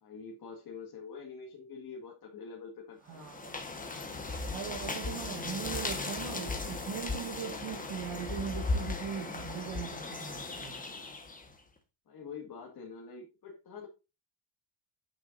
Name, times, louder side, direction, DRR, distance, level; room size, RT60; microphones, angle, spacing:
voice 1, 0.0-3.3 12.1-13.9, left 5 dB, 45° left, 2.1 m, -46 dB
voice 2, 3.0-3.6 4.5-10.8, right 8 dB, 75° right, 1.8 m, -40 dB
sound 1, 3.1-11.5, left 3 dB, 15° left, 1.4 m, -37 dB
8.7 x 6.8 x 2.6 m
cardioid pair, 165°, 48 cm